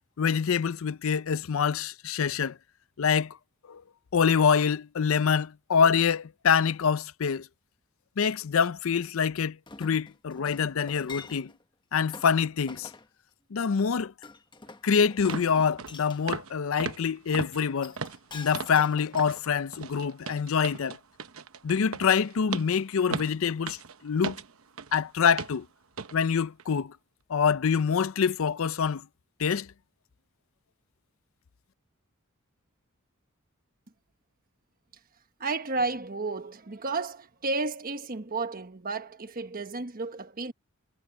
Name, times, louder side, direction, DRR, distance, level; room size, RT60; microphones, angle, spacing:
voice 1, 0.2-2.6 3.0-3.4 3.7-3.8 4.1-7.5 8.2-11.5 11.9-12.9 13.5-14.1 14.8-17.9 18.3-21.0 21.6-24.4 24.9-25.7 26.1-26.9 27.3-29.0 29.4-29.7, left 6 dB, 70° left, 0.5 m, -25 dB
Chink clink, 9.7-11.6 12.1-12.3 12.7-13.1 14.2-16.2 17.6-19.9 20.4-20.5, left 4 dB, 20° left, 1.1 m, -46 dB
sound 1, 14.7-14.8 15.3-15.5 15.8-16.0 16.3-16.5 16.8-18.8 19.1-19.4 19.7-25.0 25.4-25.6 26.0-26.2 26.6-26.7, right 5 dB, 75° right, 0.9 m, -37 dB
voice 2, 35.4-40.5, right 3 dB, 45° right, 1.3 m, -32 dB
head